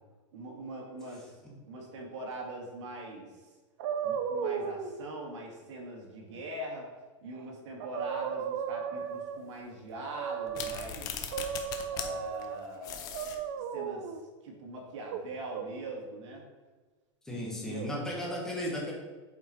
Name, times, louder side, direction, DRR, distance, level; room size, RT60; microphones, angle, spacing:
voice 1, 0.3-1.4 1.6-3.3 4.0-6.9 7.2-11.1 11.9-14.1 14.4-16.4 17.3-17.9, right 1 dB, 70° right, -1 dB, 2.4 m, -42 dB
sound 1, 3.8-4.9 7.4-7.5 7.8-9.5 10.1-10.9 11.3-12.6 13.1-14.2 15.1-15.6, right 7 dB, 45° right, 0.6 m, -35 dB
sound 2, 10.5-12.1 12.4-12.5 12.8-13.4, left 8 dB, 25° left, 0.6 m, -38 dB
voice 2, 17.2-18.9, equal, 5° left, -4 dB, 1.4 m, -35 dB
7.7 x 5.2 x 4.5 m, 1.3 s
supercardioid pair, 175°, 16 cm